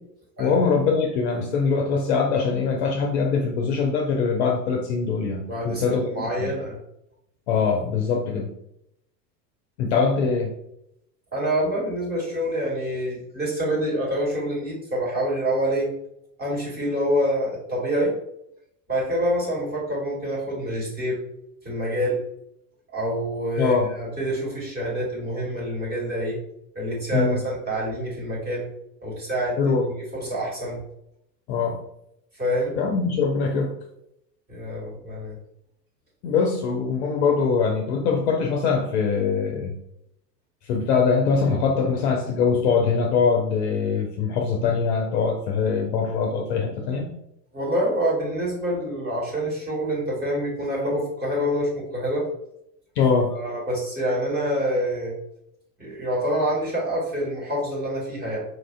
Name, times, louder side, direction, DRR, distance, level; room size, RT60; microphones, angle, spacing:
voice 1, 0.4-6.1 6.4-6.5 7.5-8.5 9.8-10.5 23.6-23.9 27.1-27.4 29.6-29.9 31.5-31.8 32.7-33.7 36.2-39.7 40.7-47.1 53.0-53.3, left 5 dB, 45° left, 1 dB, 0.5 m, -22 dB
voice 2, 5.5-6.8 11.3-15.9 16.4-18.2 18.9-21.2 21.6-22.2 22.9-26.4 26.7-28.7 29.0-29.9 30.1-30.8 32.4-32.8 34.5-35.4 47.5-52.3 53.3-55.2 55.8-58.4, equal, 20° right, -4 dB, 1.2 m, -26 dB
4.2 x 2.4 x 2.3 m, 0.79 s
figure-of-eight pair, 85°, 50 cm